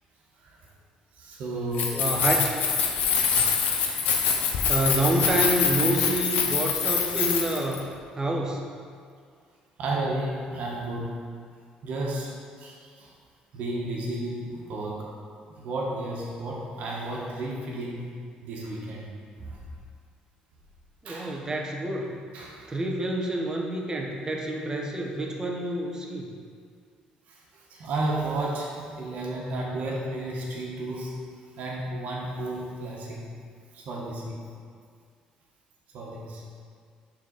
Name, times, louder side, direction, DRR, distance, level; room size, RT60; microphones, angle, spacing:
voice 1, 1.2-2.2 3.4-4.6 9.8-11.1 11.8-12.3 12.6-13.1 13.5-15.1 15.6-18.0 18.4-19.1 19.4-19.6 21.0-21.3 22.3-22.7 27.3-31.2 31.6-33.2 33.7-34.4 35.9-36.4, right 2 dB, 70° right, -3 dB, 1.3 m, -33 dB
Keys jangling, 1.7-7.8, left 6 dB, 80° left, 0.7 m, -25 dB
voice 2, 1.9-2.3 4.7-7.9 8.2-8.6 21.0-22.2 22.7-26.3, right 1 dB, 25° right, 0 dB, 1.0 m, -28 dB
6.2 x 4.0 x 4.1 m, 2.1 s
supercardioid pair, 80°, 3 cm